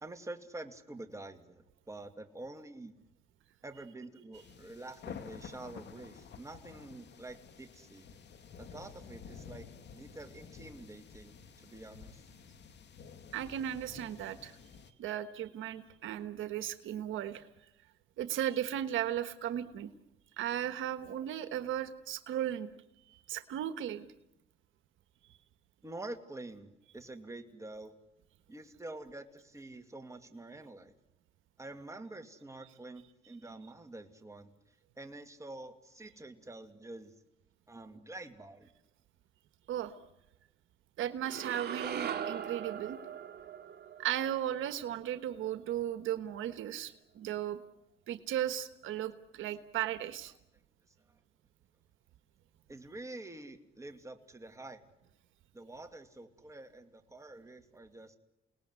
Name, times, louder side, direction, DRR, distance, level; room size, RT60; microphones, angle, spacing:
voice 1, 0.0-2.9 3.6-8.1 8.6-9.7 9.9-12.2 25.8-27.9 28.5-30.9 31.6-34.5 35.0-37.1 37.7-38.7 51.1-51.2 52.7-54.8 55.5-58.2, right 2 dB, 15° right, 6 dB, 2.6 m, -47 dB
sound 1, 4.3-14.9, left 6 dB, 60° left, 2.3 m, -51 dB
voice 2, 13.3-14.5 15.0-17.5 18.2-19.9 20.4-22.7 23.3-24.1 39.7-39.9 41.0-43.0 44.0-47.6 48.1-50.3, right 11 dB, 85° right, 10 dB, 1.3 m, -36 dB
sound 2, 41.2-45.5, right 8 dB, 55° right, 2.4 m, -40 dB
29.0 x 19.0 x 9.8 m, 0.91 s
cardioid pair, 90°, 20 cm